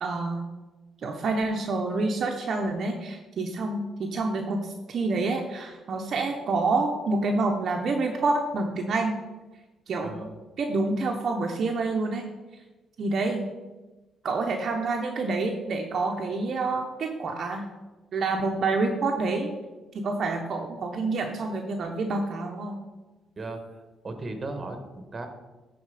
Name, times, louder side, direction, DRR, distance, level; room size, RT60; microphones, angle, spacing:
voice 1, 0.0-0.4 1.0-9.2 9.9-10.1 10.6-12.3 13.0-13.5 14.2-17.7 18.1-19.5 19.9-22.8, right 3 dB, 60° right, 2 dB, 0.8 m, -27 dB
voice 2, 24.0-25.3, right 2 dB, 30° right, 6 dB, 1.3 m, -36 dB
9.5 x 4.3 x 4.9 m, 1.2 s
cardioid pair, 90°, 0 cm